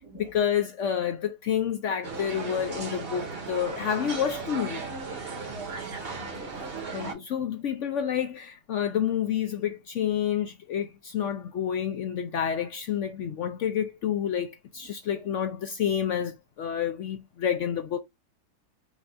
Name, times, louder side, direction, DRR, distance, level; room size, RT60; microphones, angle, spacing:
voice 1, 0.1-4.8 6.9-18.0, left 9 dB, 65° left, 0.7 m, -29 dB
sound 1, 2.0-7.1, right 4 dB, 40° right, 1.1 m, -36 dB
voice 2, 5.4-6.2 15.2-15.3, right 3 dB, 85° right, 2.2 m, -43 dB
5.2 x 2.4 x 4.1 m
omnidirectional pair, 1.7 m